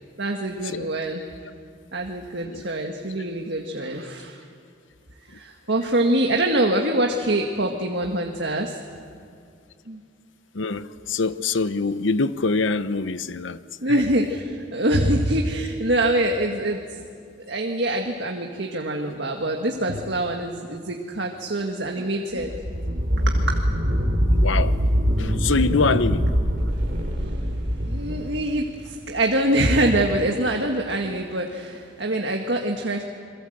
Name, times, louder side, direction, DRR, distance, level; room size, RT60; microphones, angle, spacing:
voice 1, 0.2-1.2 1.9-4.4 5.3-8.8 9.9-10.0 13.8-16.8 17.5-22.6 22.9-23.6 27.0-33.0, right 1 dB, 70° right, 1.7 m, -25 dB
voice 2, 10.5-14.0 24.3-24.8 25.2-26.3, left 4 dB, 85° left, 0.8 m, -24 dB
sound 1, 22.4-28.8, equal, 55° right, 2.8 m, -23 dB
27.5 x 22.5 x 7.9 m
head